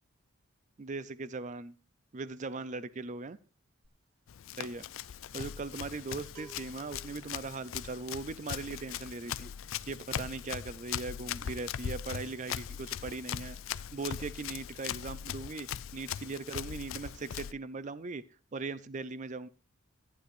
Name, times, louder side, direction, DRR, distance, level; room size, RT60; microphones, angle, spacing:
voice 1, 0.8-1.7 2.1-3.4 4.6-4.8 5.3-9.5 9.9-18.2 18.5-19.5, right 3 dB, 35° right, 15 dB, 0.4 m, -39 dB
sound 1, 3.8-4.1 4.4-13.0 13.2-13.5 13.7-14.6 14.8-15.2, right 4 dB, 75° right, 2.3 m, -60 dB
Run, 4.3-17.5, left 9 dB, 65° left, 0.4 m, -40 dB
14.5 x 9.9 x 2.5 m, 0.36 s
head